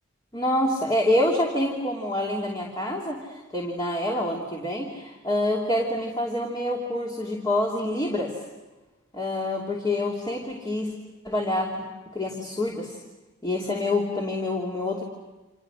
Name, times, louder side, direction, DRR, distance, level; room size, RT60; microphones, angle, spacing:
voice 1, 0.3-8.3 9.1-10.9 11.2-11.9 12.1-13.0 13.4-15.0, left 1 dB, 25° left, -1 dB, 2.9 m, -26 dB
30.0 x 27.0 x 6.4 m, 1.2 s
head